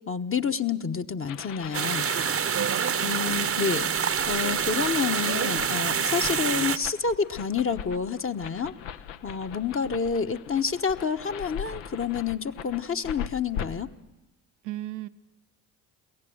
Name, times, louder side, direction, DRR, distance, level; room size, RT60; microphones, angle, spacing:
voice 1, 0.1-2.1 3.0-8.7 9.2-13.9, left 6 dB, 30° left, 8 dB, 1.1 m, -29 dB
sound 1, 1.3-13.7, left 8 dB, 75° left, 1.0 m, -41 dB
sound 2, 1.7-6.8, right 7 dB, 30° right, 0.9 m, -26 dB
voice 2, 2.5-3.1 14.6-15.1, right 14 dB, 70° right, 9 dB, 0.8 m, -36 dB
23.0 x 17.5 x 7.8 m, 0.99 s
hypercardioid pair, 50°, 46 cm